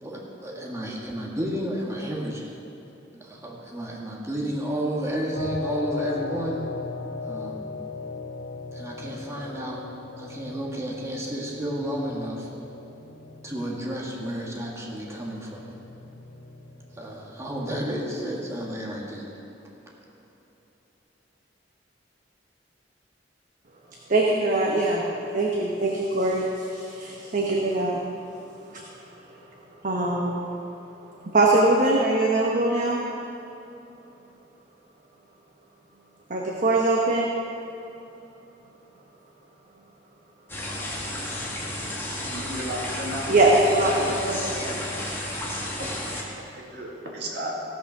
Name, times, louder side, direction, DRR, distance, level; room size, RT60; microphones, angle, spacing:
voice 1, 0.0-2.6 3.2-6.7 7.2-7.7 8.7-9.9 10.2-12.5 13.4-15.7 16.9-19.3, equal, 15° right, -3 dB, 1.5 m, -31 dB
sound 1, 5.4-18.3, left 4 dB, 60° left, 1.2 m, -38 dB
voice 2, 24.1-25.0 25.3-28.0 29.8-30.5 31.3-33.0 36.3-37.3 43.3-44.8, right 2 dB, 45° right, -2 dB, 1.2 m, -22 dB
sound 2, 40.5-46.2, left 1 dB, 15° left, 1.8 m, -32 dB
voice 3, 42.2-43.3 46.5-47.6, right 1 dB, 65° right, -2 dB, 2.1 m, -34 dB
16.5 x 6.1 x 6.1 m, 2.9 s
head